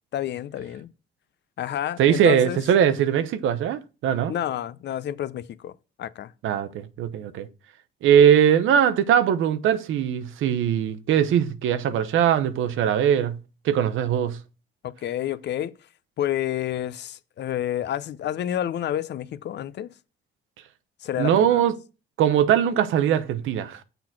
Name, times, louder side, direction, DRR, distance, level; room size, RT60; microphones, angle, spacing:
voice 1, 0.1-0.9 1.6-2.6 4.3-5.7 6.0-6.3 14.8-15.7 16.2-19.9 21.0-21.6, left 11 dB, 60° left, 0.6 m, -29 dB
voice 2, 2.0-4.3 6.4-7.5 8.0-13.4 13.6-14.4 21.2-21.7 22.2-23.8, right 9 dB, 80° right, 0.8 m, -21 dB
6.8 x 3.9 x 5.9 m
cardioid pair, 90°, 20 cm